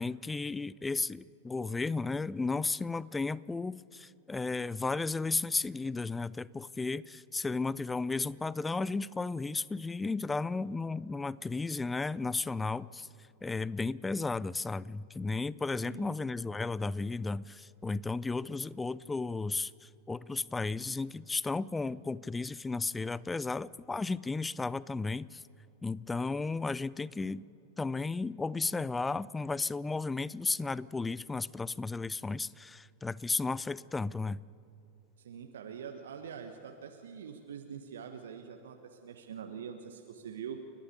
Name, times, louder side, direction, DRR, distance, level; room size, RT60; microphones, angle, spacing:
voice 1, 0.0-13.1 13.4-25.4 25.8-27.4 27.8-34.4, left 3 dB, 10° left, 21 dB, 0.4 m, -34 dB
voice 2, 15.8-16.1 35.2-40.6, right 7 dB, 60° right, 5 dB, 1.3 m, -44 dB
30.0 x 11.5 x 8.3 m, 2.9 s
figure-of-eight pair, 90°, 0 cm